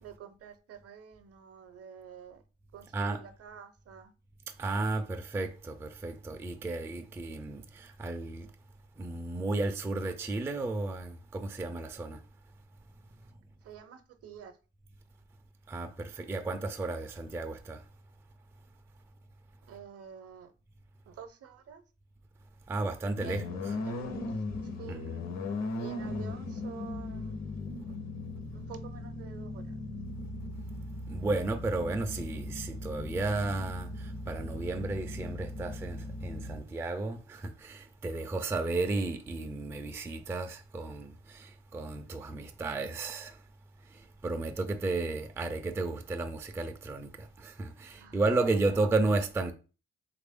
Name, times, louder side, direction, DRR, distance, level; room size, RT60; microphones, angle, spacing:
voice 1, 0.0-2.4 2.7-4.1 13.6-14.5 19.7-20.5 21.1-21.8 23.2-23.6 23.8-24.3 24.6-25.0 25.8-27.4 27.8-27.9 28.5-29.8 47.9-48.6, right 7 dB, 50° right, 0.6 m, -49 dB
voice 2, 4.5-8.5 9.0-12.2 15.7-17.8 22.7-23.7 24.9-25.2 31.1-43.4 43.8-49.5, right 3 dB, 10° right, 0.3 m, -33 dB
sound 1, 23.1-36.6, left 2 dB, 60° left, 0.8 m, -38 dB
3.2 x 2.5 x 3.5 m
cardioid pair, 90°, 30 cm